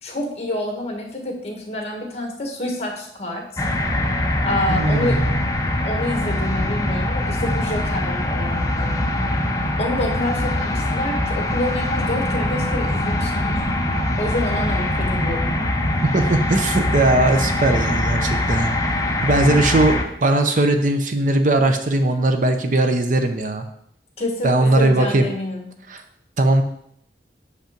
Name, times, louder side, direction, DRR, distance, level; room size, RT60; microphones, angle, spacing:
voice 1, 0.0-3.6 4.4-5.2 5.8-9.1 9.8-13.6 14.2-15.6 24.2-25.7, left 1 dB, 35° left, 0 dB, 1.7 m, -27 dB
sound 1, 3.6-20.0, left 1 dB, 20° left, 0.7 m, -22 dB
voice 2, 4.7-5.3 16.0-18.8 19.2-23.6 24.4-25.3 25.9-26.0 26.4-26.6, right 2 dB, 45° right, 7 dB, 0.6 m, -19 dB
6.6 x 5.3 x 5.2 m, 0.71 s
head